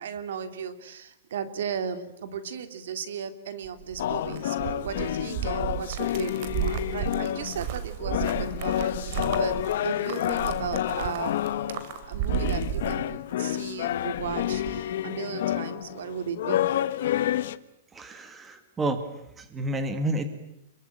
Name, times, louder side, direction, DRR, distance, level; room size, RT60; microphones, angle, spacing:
voice 1, 0.0-11.4 12.0-16.7, right 7 dB, 75° right, 11 dB, 3.0 m, -36 dB
sound 1, 3.6-13.6 13.9-14.8, right 10 dB, 45° right, 3.1 m, -34 dB
sound 2, 4.0-7.7 8.0-17.6, left 12 dB, 60° left, 1.2 m, -29 dB
voice 2, 17.9-19.0 19.4-20.3, right 1 dB, 10° right, 9 dB, 2.1 m, -30 dB
29.0 x 22.5 x 9.1 m, 0.83 s
supercardioid pair, 165°, 0 cm